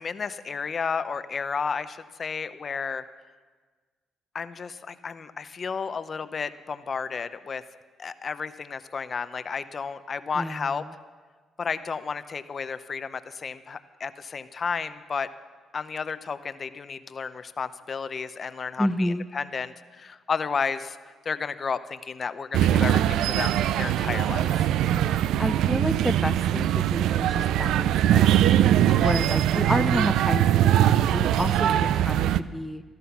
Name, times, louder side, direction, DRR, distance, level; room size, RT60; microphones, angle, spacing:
voice 1, 0.0-3.1 4.3-7.6 8.0-10.8 11.6-15.3 15.7-21.0 21.2-24.7 28.9-29.2, left 5 dB, 45° left, 12 dB, 0.7 m, -32 dB
voice 2, 10.4-10.8 18.8-19.3 25.4-28.4 29.0-32.8, equal, ahead, 8 dB, 0.6 m, -30 dB
sound 1, 22.5-32.4, right 11 dB, 85° right, 0.4 m, -22 dB
15.5 x 13.5 x 5.9 m, 1.4 s
cardioid pair, 90°, 0 cm